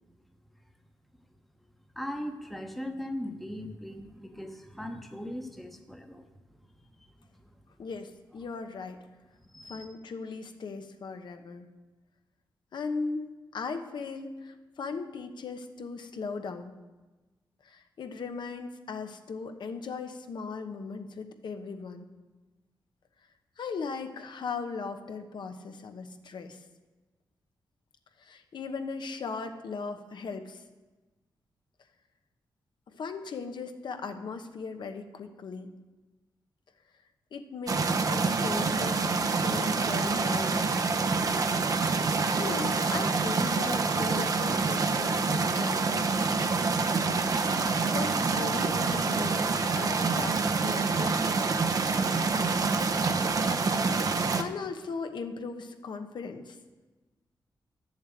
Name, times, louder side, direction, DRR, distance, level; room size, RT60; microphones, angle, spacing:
voice 1, 1.9-6.6 7.0-7.1 9.4-9.9, left 1 dB, ahead, 5 dB, 1.1 m, -39 dB
voice 2, 7.8-9.0 9.7-11.7 12.7-16.7 17.6-22.1 23.6-26.6 28.2-30.6 32.9-35.7 37.3-40.8 42.4-46.1 47.9-51.8 54.3-56.6, left 4 dB, 70° left, 7 dB, 1.1 m, -38 dB
sound 1, 37.7-54.4, right 4 dB, 50° right, 0.8 m, -27 dB
12.0 x 7.1 x 9.1 m, 1.2 s
wide cardioid pair, 155°, 8 cm